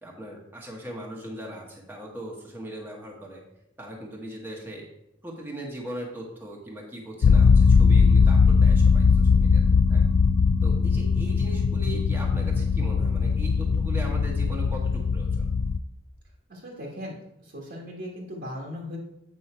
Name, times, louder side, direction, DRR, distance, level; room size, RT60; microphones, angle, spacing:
voice 1, 0.0-3.4 3.8-4.9 5.2-10.0 10.6-15.5, right 1 dB, 10° right, -2 dB, 1.2 m, -39 dB
sound 1, 7.2-15.8, left 5 dB, 85° left, 0.4 m, -20 dB
voice 2, 16.5-17.2 17.4-19.0, left 1 dB, 55° right, -4 dB, 1.5 m, -38 dB
8.3 x 5.4 x 4.4 m, 0.84 s
head